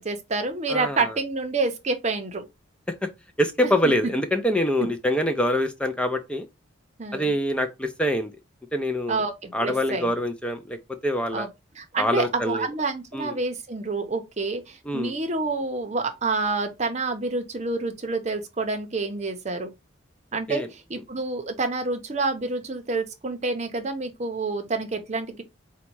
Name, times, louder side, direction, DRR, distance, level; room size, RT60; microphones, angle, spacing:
voice 1, 0.0-2.4 3.6-3.9 7.0-7.3 9.1-10.1 11.3-11.5 11.7-19.7 20.3-25.4, right 3 dB, 35° right, 0.7 m, -28 dB
voice 2, 0.7-1.0 2.9-3.1 3.4-6.5 7.1-8.3 8.7-9.2 9.5-11.5 12.0-12.7 13.1-13.3 14.9-15.1 20.5-20.7, equal, 5° left, 0.4 m, -25 dB
4.0 x 2.2 x 4.5 m
head